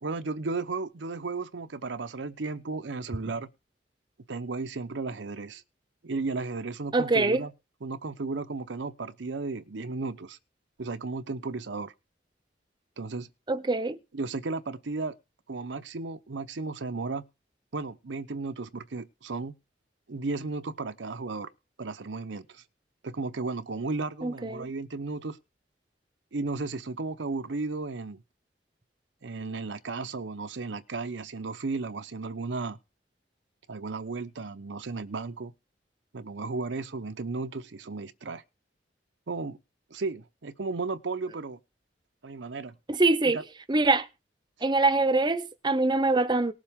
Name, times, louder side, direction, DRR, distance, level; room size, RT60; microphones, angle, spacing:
voice 1, 0.0-3.5 4.3-5.6 6.0-7.5 7.8-10.4 10.8-11.9 13.0-13.3 14.1-15.2 15.5-17.2 17.7-19.5 20.1-21.5 21.8-22.6 23.0-25.4 26.3-28.2 29.2-32.8 33.7-35.5 36.1-38.4 39.3-39.6 39.9-41.6 42.2-42.8 43.3-43.4, right 3 dB, 80° right, 0.7 m, -34 dB
voice 2, 6.9-7.4 13.5-14.0 24.2-24.7 42.9-43.4 43.7-44.1 44.6-46.5, right 2 dB, 25° right, 0.7 m, -24 dB
19.0 x 7.3 x 3.6 m
head